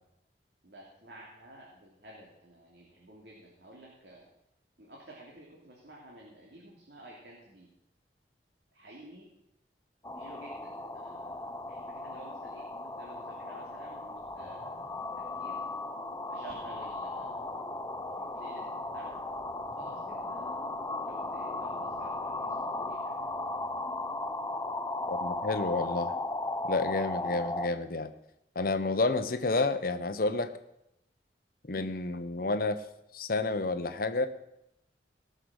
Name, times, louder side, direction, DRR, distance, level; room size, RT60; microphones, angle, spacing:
voice 1, 0.6-4.3 4.8-7.7 8.7-9.3 10.2-15.1 15.4-15.6 16.3-17.6 18.1-18.6 18.9-19.2 19.8-20.7 21.0-23.1 27.1-27.4, right 1 dB, 65° right, -3 dB, 2.9 m, -52 dB
sound 1, 10.0-27.7, left 2 dB, 15° left, 0.6 m, -36 dB
voice 2, 25.1-26.1 26.7-28.1 28.5-30.5 31.7-32.8 33.1-34.3, left 3 dB, 55° left, 10 dB, 0.9 m, -30 dB
18.5 x 6.7 x 6.4 m, 0.83 s
head